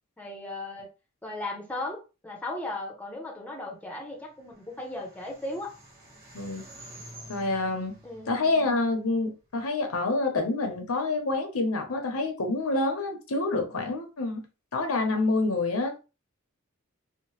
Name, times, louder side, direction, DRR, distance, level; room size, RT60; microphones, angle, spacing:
voice 1, 0.2-0.9 1.2-5.7 8.0-8.4, left 2 dB, 5° left, 0.7 m, -36 dB
sound 1, 4.1-9.5, right 1 dB, 45° right, 1.2 m, -50 dB
voice 2, 7.3-8.0 8.3-14.4 14.7-16.0, left 2 dB, 80° left, 0.7 m, -27 dB
2.8 x 2.0 x 3.1 m
head